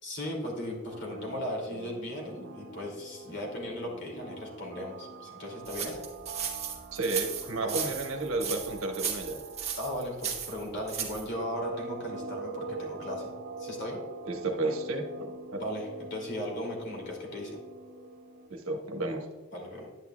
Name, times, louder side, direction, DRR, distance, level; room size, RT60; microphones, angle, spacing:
voice 1, 0.0-6.0 7.6-7.8 9.7-13.3 13.6-14.0 15.6-17.6 19.5-19.9, left 1 dB, 55° left, -1 dB, 2.4 m, -37 dB
sound 1, 0.9-18.5, right 3 dB, 50° right, 0.6 m, -44 dB
sound 2, 5.6-11.3, right 8 dB, 30° right, 1.0 m, -35 dB
voice 2, 6.9-9.4 14.2-15.6 18.5-19.3, right 2 dB, 75° right, 3 dB, 1.2 m, -32 dB
9.9 x 9.1 x 2.3 m, 1.3 s
head